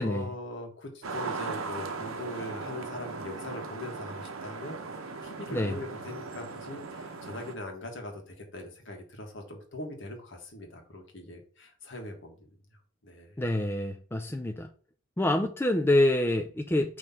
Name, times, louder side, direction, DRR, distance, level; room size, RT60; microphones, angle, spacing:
voice 1, 0.0-12.6 13.0-13.4, left 1 dB, 60° left, 2 dB, 1.5 m, -41 dB
sound 1, 1.0-7.6, right 4 dB, 80° right, 0.8 m, -38 dB
voice 2, 13.4-14.7 15.2-17.0, left 1 dB, 10° left, 5 dB, 0.4 m, -26 dB
5.4 x 3.1 x 5.6 m, 0.41 s
head